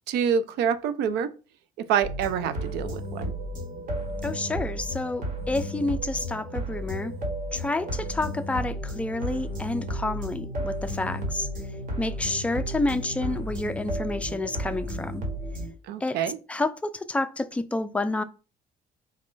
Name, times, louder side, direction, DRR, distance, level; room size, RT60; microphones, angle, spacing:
voice 1, 0.1-1.3 1.8-3.3 15.9-16.4, right 7 dB, 80° right, 0.5 m, -26 dB
sound 1, 2.0-15.7, equal, 55° right, 1.4 m, -33 dB
voice 2, 4.2-7.1 7.5-11.5 12.0-15.2 16.0-16.2 16.5-18.2, left 2 dB, 10° left, 0.3 m, -29 dB
4.1 x 2.5 x 3.7 m
cardioid pair, 110°, 17 cm